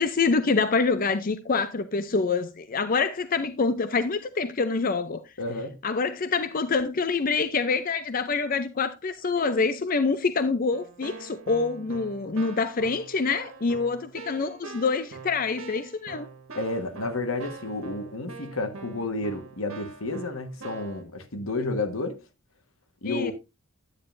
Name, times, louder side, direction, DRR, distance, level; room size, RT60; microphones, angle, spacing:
voice 1, 0.0-5.3 5.8-16.3 23.0-23.3, left 4 dB, 45° left, 0.5 m, -26 dB
voice 2, 5.4-5.8 16.5-22.2 23.0-23.3, left 2 dB, 85° left, 1.4 m, -31 dB
Keyboard (musical), 10.7-21.0, right 4 dB, 80° right, 1.7 m, -44 dB
9.8 x 9.3 x 2.6 m
head